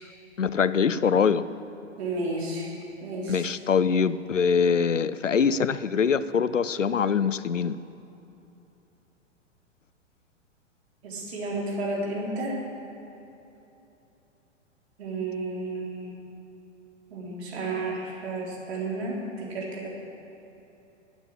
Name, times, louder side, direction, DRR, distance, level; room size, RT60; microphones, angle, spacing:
voice 1, 0.4-1.4 3.3-7.8, left 6 dB, 85° left, 16 dB, 0.6 m, -23 dB
voice 2, 2.0-2.7 3.0-3.5 11.0-12.6 15.0-16.2 17.1-19.9, right 2 dB, 60° right, -3 dB, 3.8 m, -32 dB
12.5 x 9.2 x 8.7 m, 3.0 s
figure-of-eight pair, 105°, 36 cm